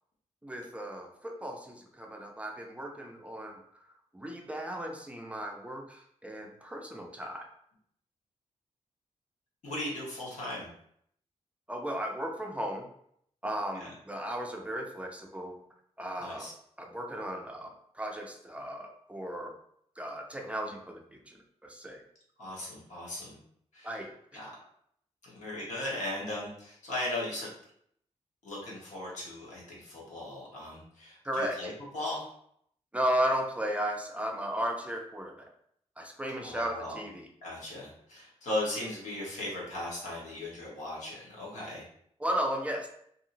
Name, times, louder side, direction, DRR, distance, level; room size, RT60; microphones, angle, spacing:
voice 1, 0.4-3.6 4.1-7.5 11.7-12.9 13.4-15.6 16.0-16.5 16.8-19.5 20.0-21.4 21.6-22.0 23.8-24.1 31.2-31.6 32.9-35.5 36.0-37.3 42.2-42.9, equal, 10° right, 1 dB, 0.4 m, -35 dB
voice 2, 9.6-10.7 13.7-13.9 16.2-16.5 22.4-23.4 23.7-24.1 24.3-24.5 25.2-27.5 28.4-32.3 36.4-37.0 37.4-41.8, left 1 dB, 85° left, -5 dB, 1.2 m, -37 dB
2.7 x 2.7 x 2.6 m, 0.68 s
wide cardioid pair, 115°, 12 cm